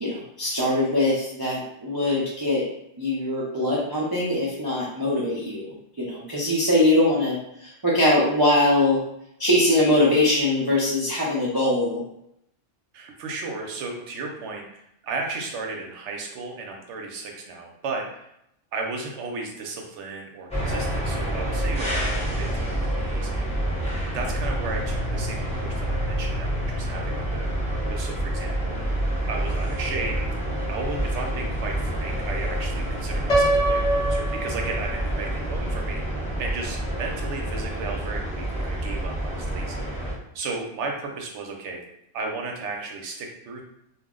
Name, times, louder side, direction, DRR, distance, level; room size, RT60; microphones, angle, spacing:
voice 1, 0.0-2.6 3.0-9.0 9.4-12.0, left 1 dB, 35° right, -7 dB, 0.4 m, -22 dB
voice 2, 12.9-18.3 18.7-23.5 24.1-29.0 29.3-30.2 30.7-41.8 42.1-43.6, right 3 dB, 80° right, 1 dB, 0.9 m, -34 dB
sound 1, 20.5-40.1, right 1 dB, 5° left, 0.6 m, -28 dB
Piano, 33.3-35.3, right 1 dB, 45° left, 0.6 m, -24 dB
2.3 x 2.0 x 3.5 m, 0.78 s
omnidirectional pair, 1.2 m